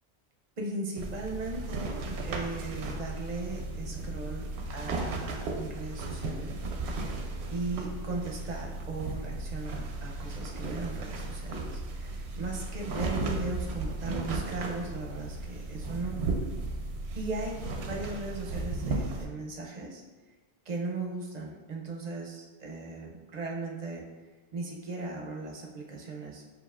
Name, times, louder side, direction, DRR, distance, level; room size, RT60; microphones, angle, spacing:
voice 1, 0.6-6.6 7.5-16.3 17.2-20.0 20.7-24.0 24.5-26.4, right 3 dB, 50° right, -1 dB, 0.6 m, -37 dB
sound 1, 1.0-19.2, right 2 dB, 85° right, 0.9 m, -35 dB
6.9 x 2.7 x 2.4 m, 1.3 s
omnidirectional pair, 1.1 m